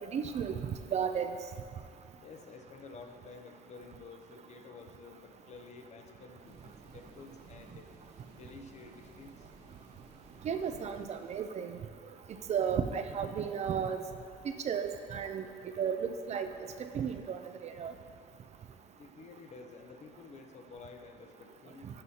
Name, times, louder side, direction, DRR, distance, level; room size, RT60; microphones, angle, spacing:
voice 1, 0.1-1.3 10.4-11.8 12.5-14.0 14.6-15.4 15.8-16.5 16.8-17.9, right 7 dB, 40° right, 7 dB, 0.4 m, -33 dB
voice 2, 2.2-7.9 8.3-9.5 19.0-21.9, left 4 dB, 40° left, 5 dB, 0.7 m, -51 dB
sound 1, 6.4-11.4, right 3 dB, 90° right, 1.2 m, -56 dB
12.5 x 5.4 x 2.8 m, 2.3 s
cardioid pair, 110°, 17 cm